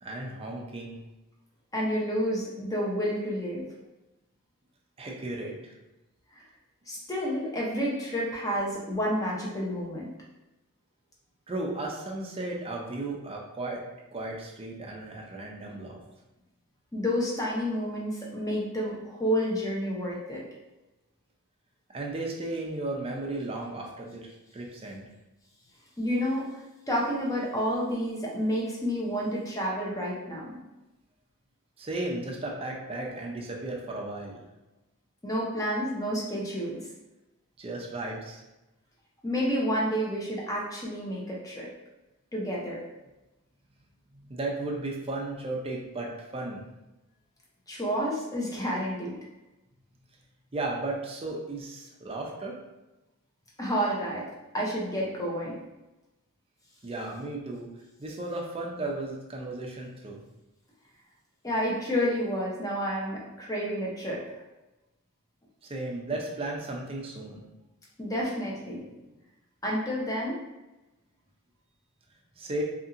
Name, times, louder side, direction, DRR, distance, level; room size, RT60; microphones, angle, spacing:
voice 1, 0.0-1.0 5.0-5.7 11.5-13.8 14.1-16.0 21.9-25.0 31.8-34.4 37.6-38.4 44.1-46.6 50.5-52.6 56.8-57.7 58.0-60.2 65.6-67.4 72.4-72.6, right 2 dB, 25° right, -1 dB, 0.5 m, -35 dB
voice 2, 1.7-3.7 6.9-10.1 16.9-20.4 26.0-26.6 26.9-30.6 35.2-36.8 39.2-41.7 42.3-42.8 47.7-49.2 53.6-54.3 54.5-55.6 61.4-64.2 68.0-68.8 69.6-70.4, equal, 15° left, -4 dB, 0.6 m, -30 dB
2.8 x 2.7 x 2.5 m, 1.0 s
head